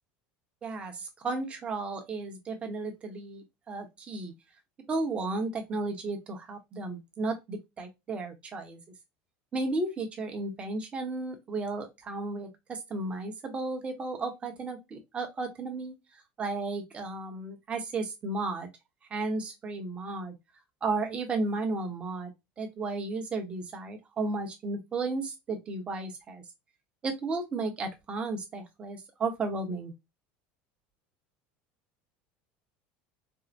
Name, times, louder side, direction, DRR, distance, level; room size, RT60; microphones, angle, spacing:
voice 1, 0.6-4.3 4.9-8.8 9.5-15.9 16.4-18.7 19.1-20.3 20.8-26.4 27.0-29.9, right 3 dB, 25° right, 1.0 m, -34 dB
4.6 x 2.1 x 2.5 m
cardioid pair, 145°, 5 cm